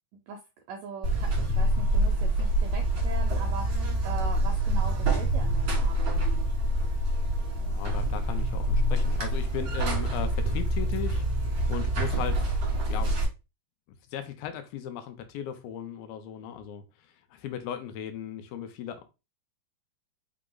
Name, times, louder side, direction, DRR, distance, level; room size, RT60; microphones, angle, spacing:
voice 1, 0.7-6.5, right 5 dB, 85° right, 3 dB, 1.8 m, -40 dB
Buzz, 1.0-13.2, right 1 dB, 65° right, 1.0 m, -26 dB
voice 2, 7.6-11.2 11.7-12.6 12.9-13.1 14.1-16.8 17.3-19.1, left 9 dB, 80° left, 8 dB, 2.3 m, -37 dB
5.8 x 2.1 x 3.8 m, 0.27 s
omnidirectional pair, 4.4 m